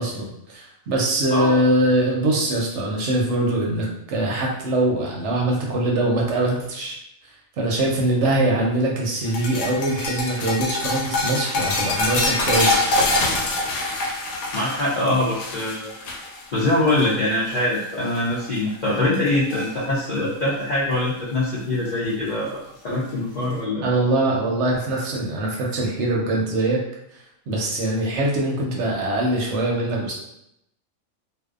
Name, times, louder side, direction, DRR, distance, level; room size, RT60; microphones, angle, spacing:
voice 1, 0.0-7.0 7.2-12.9 23.8-26.8 27.5-30.1, right 1 dB, 65° right, -2 dB, 0.8 m, -23 dB
voice 2, 1.3-1.6 14.5-15.9 16.5-23.9, left 1 dB, 70° left, -8 dB, 0.4 m, -23 dB
sound 1, 9.3-17.8 18.1-18.4 18.9-19.7 21.0-21.1 22.4-22.5, left 2 dB, 90° left, 1.1 m, -25 dB
2.6 x 2.1 x 2.3 m, 0.79 s
omnidirectional pair, 1.5 m